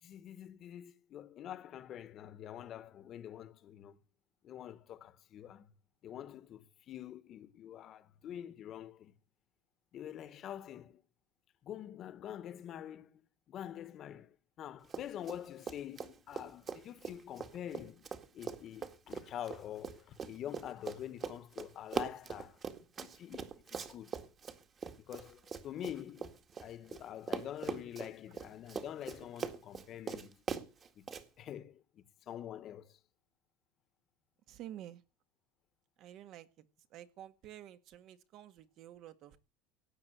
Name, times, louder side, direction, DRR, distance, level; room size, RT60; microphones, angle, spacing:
voice 1, 0.0-4.0 4.4-5.7 6.0-9.1 9.9-11.0 11.6-13.2 13.5-22.6 23.0-24.1 25.1-26.3 26.6-30.4 31.0-31.1 31.4-33.0, left 10 dB, 40° left, 1.5 m, -46 dB
Run, 14.8-15.4 15.6-27.0 27.3-31.2, right 6 dB, 25° right, 1.9 m, -41 dB
voice 2, 34.5-35.0 36.0-36.5 36.9-39.4, right 12 dB, 50° right, 1.7 m, -50 dB
16.5 x 9.1 x 8.1 m
supercardioid pair, 135°, 0 cm